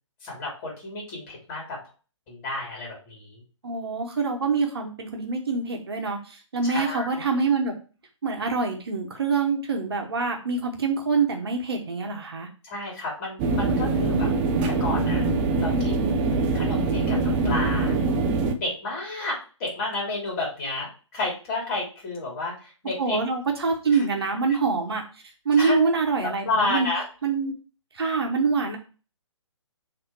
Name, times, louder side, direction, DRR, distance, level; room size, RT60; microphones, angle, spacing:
voice 1, 0.2-1.8 2.3-3.4 6.6-7.2 12.6-14.3 14.7-15.2 15.6-16.2 16.5-18.0 18.5-23.2 23.9-24.0 25.6-27.0, left 2 dB, 30° left, -3 dB, 3.4 m, -31 dB
voice 2, 3.6-7.7 8.2-12.5 23.0-25.0 25.4-26.9 27.2-27.5 27.9-28.8, right 4 dB, 55° right, 3 dB, 1.3 m, -25 dB
sound 1, 13.4-18.5, right 3 dB, 15° right, 0.5 m, -23 dB
6.6 x 3.6 x 4.7 m, 0.35 s
figure-of-eight pair, 140°, 16 cm